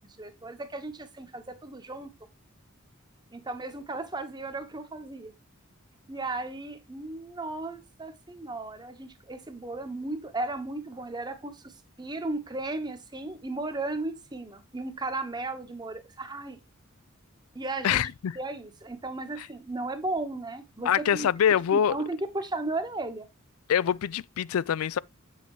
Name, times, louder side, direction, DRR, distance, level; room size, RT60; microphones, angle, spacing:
voice 1, 0.0-2.1 3.3-5.3 6.1-16.6 17.5-18.1 18.3-21.3 21.7-23.3, right 2 dB, 20° right, 1.1 m, -35 dB
voice 2, 17.8-18.4 19.4-19.5 20.9-22.0 23.7-25.0, left 8 dB, 85° left, 0.4 m, -25 dB
8.2 x 6.5 x 3.1 m
head